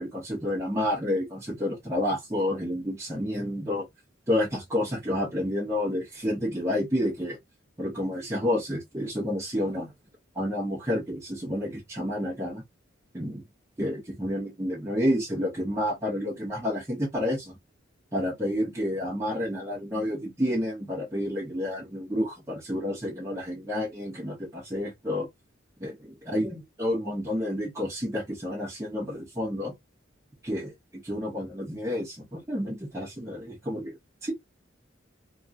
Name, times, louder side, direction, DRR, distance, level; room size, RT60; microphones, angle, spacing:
voice 1, 0.0-3.8 4.3-7.4 7.8-9.9 10.3-12.6 13.1-13.4 13.8-17.5 18.1-25.3 25.8-25.9 26.3-29.7 30.4-30.7 31.0-33.9 34.2-34.3, left 1 dB, 15° right, 0.8 m, -29 dB
2.8 x 2.4 x 2.5 m
head